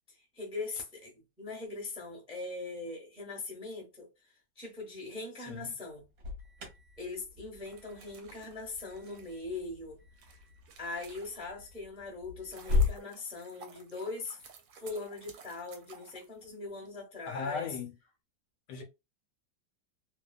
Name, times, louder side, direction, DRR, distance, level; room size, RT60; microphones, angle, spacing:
voice 1, 0.1-1.1 1.4-4.1 4.6-6.0 7.0-10.0 10.8-14.4 14.8-17.7, left 3 dB, 5° right, 0.6 m, -41 dB
Alarm, 6.0-13.0, left 4 dB, 60° right, 1.2 m, -36 dB
sound 1, 7.6-11.7 12.2-16.9, right 6 dB, 75° right, 1.2 m, -54 dB
voice 2, 17.3-17.9 18.7-18.8, left 5 dB, 70° left, 1.1 m, -37 dB
2.9 x 2.2 x 2.3 m
omnidirectional pair, 2.0 m